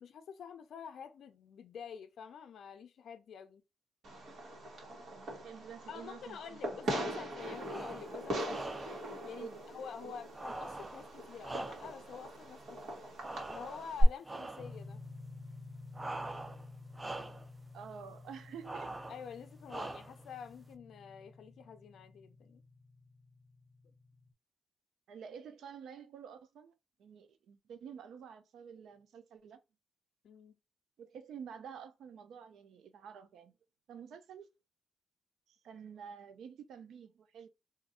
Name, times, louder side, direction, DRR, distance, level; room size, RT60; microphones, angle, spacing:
voice 1, 0.0-3.6 5.9-8.8 9.2-13.1 13.5-15.0 19.1-22.6 30.2-30.6, left 7 dB, 70° left, 0.4 m, -48 dB
Fireworks, 4.0-14.0, equal, 65° right, 1.4 m, -40 dB
voice 2, 5.1-7.3 9.3-9.7 10.0-10.1 17.7-18.9 25.1-26.7 27.0-29.6 31.0-33.5 33.9-34.5 35.5-37.5, right 7 dB, 85° right, 0.5 m, -49 dB
sound 1, 7.6-8.1 8.5-9.1 10.3-12.1 13.2-13.9 14.2-14.8 15.9-16.7 16.9-17.5 18.6-19.2 19.7-20.3, right 2 dB, 20° right, 0.3 m, -43 dB
sound 2, 14.6-24.3, left 3 dB, 25° left, 0.8 m, -52 dB
2.5 x 2.5 x 4.1 m
cardioid pair, 125°, 0 cm